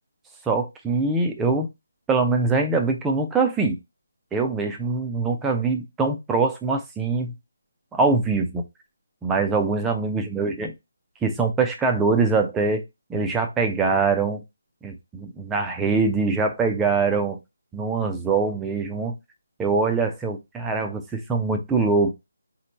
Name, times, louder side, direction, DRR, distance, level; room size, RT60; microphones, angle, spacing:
voice 1, 0.5-1.7 2.1-3.8 4.3-7.3 7.9-8.6 9.2-10.7 11.2-12.8 13.1-14.4 14.8-17.4 17.7-19.1 19.6-22.1, right 4 dB, 10° right, 4 dB, 0.6 m, -23 dB
4.1 x 3.1 x 4.1 m, 0.22 s
figure-of-eight pair, 150°, 0 cm